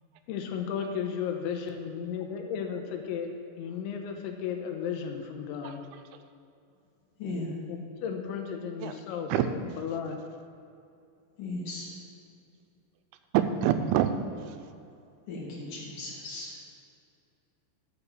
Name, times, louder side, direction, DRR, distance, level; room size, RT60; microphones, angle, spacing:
voice 1, 0.3-3.3 3.6-5.8 7.7-10.2, left 7 dB, 80° left, 4 dB, 3.3 m, -34 dB
voice 2, 7.2-7.5 11.4-11.9 15.3-16.5, left 2 dB, 55° left, -4 dB, 3.3 m, -37 dB
voice 3, 13.3-14.6, right 9 dB, 85° right, 9 dB, 3.1 m, -26 dB
12.5 x 6.9 x 6.9 m, 2.5 s
omnidirectional pair, 5.4 m